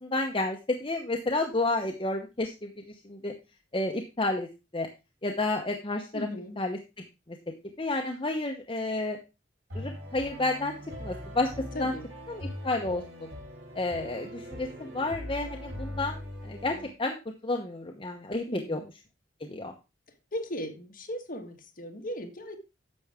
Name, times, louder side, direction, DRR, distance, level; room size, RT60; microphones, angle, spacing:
voice 1, 0.0-2.7 3.0-3.3 3.7-4.5 4.7-4.9 5.2-6.3 6.6-7.4 7.8-9.2 9.7-10.7 11.0-11.9 12.3-13.3 13.7-17.1 17.4-18.8 19.4-19.7, left 2 dB, 25° left, 2 dB, 0.9 m, -31 dB
voice 2, 6.1-6.6 11.7-12.1 18.5-18.9 20.3-22.5, equal, 45° left, 2 dB, 1.8 m, -37 dB
sound 1, 9.7-16.9, equal, 65° right, 3.7 m, -41 dB
10.5 x 7.0 x 3.6 m, 0.27 s
head